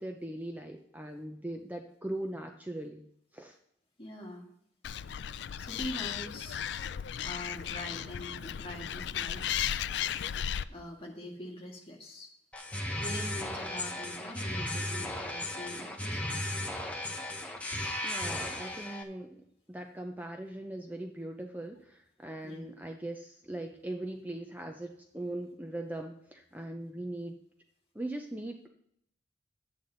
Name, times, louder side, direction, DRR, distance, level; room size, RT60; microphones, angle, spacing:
voice 1, 0.0-3.0 3.3-3.6 18.0-27.4 27.9-28.7, right 1 dB, 10° right, 4 dB, 0.5 m, -40 dB
voice 2, 4.0-4.5 5.6-6.6 7.2-9.7 10.7-12.3 13.0-16.4 22.4-22.7, left 1 dB, 30° left, 0 dB, 1.8 m, -43 dB
Animal, 4.8-10.6, left 9 dB, 70° left, 0.3 m, -35 dB
sound 1, 12.5-19.0, left 1 dB, 5° left, 0.9 m, -35 dB
10.5 x 8.4 x 3.9 m, 0.73 s
head